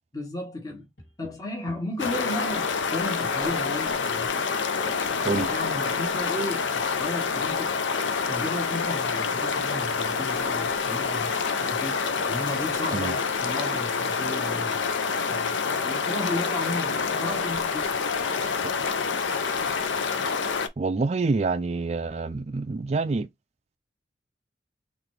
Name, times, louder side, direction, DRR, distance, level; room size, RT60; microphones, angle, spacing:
voice 1, 0.1-0.9 1.2-4.4 4.8-7.8 8.3-14.9 15.3-15.5 15.8-18.1, left 1 dB, 20° left, 1.2 m, -34 dB
Tap, 0.7-2.4 4.4-5.1, left 1 dB, 60° left, 1.9 m, -50 dB
sound 1, 2.0-20.7, left 5 dB, 85° left, 0.6 m, -27 dB
voice 2, 20.8-23.3, right 3 dB, 35° right, 0.4 m, -27 dB
4.0 x 3.1 x 3.2 m
head